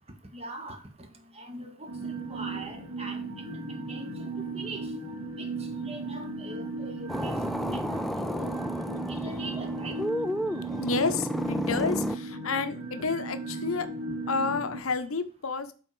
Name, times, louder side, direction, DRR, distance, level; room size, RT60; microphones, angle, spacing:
voice 1, 0.3-0.8 1.3-3.6 3.9-4.9 5.4-5.5 5.8-8.6 9.1-10.0, right 2 dB, 30° right, 5 dB, 1.4 m, -42 dB
sound 1, 1.9-14.8, right 3 dB, 60° right, 3.2 m, -36 dB
sound 2, 7.1-12.2, equal, ahead, 0.3 m, -32 dB
voice 2, 10.8-13.9 14.3-15.7, left 4 dB, 85° left, 10 dB, 0.8 m, -30 dB
7.8 x 4.2 x 4.9 m, 0.36 s
head